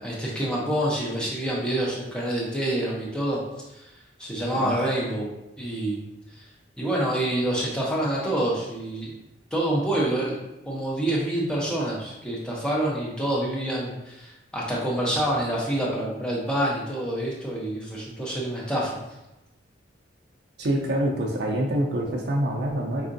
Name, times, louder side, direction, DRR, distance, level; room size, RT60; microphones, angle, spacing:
voice 1, 0.0-3.4 3.7-3.9 4.2-5.3 5.6-6.0 6.3-6.4 6.8-9.1 9.5-10.4 10.7-19.0, right 1 dB, 5° left, -5 dB, 0.6 m, -27 dB
voice 2, 20.6-23.1, right 1 dB, 55° right, -1 dB, 0.4 m, -26 dB
4.5 x 2.5 x 2.5 m, 0.93 s
head